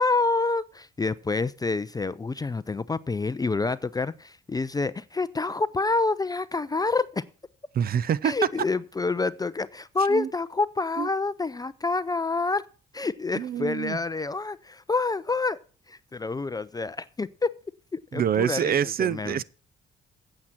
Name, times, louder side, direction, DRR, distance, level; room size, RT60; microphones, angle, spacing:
voice 1, 0.0-7.2 8.2-12.6 12.9-15.6 15.9-17.5 17.9-19.4, left 3 dB, 20° left, 0.4 m, -27 dB
voice 2, 7.8-8.3 10.1-10.3 11.0-11.1 13.4-14.0 18.1-19.4, right 8 dB, 50° right, 0.5 m, -26 dB
8.6 x 7.6 x 5.8 m
cardioid pair, 90°, 20 cm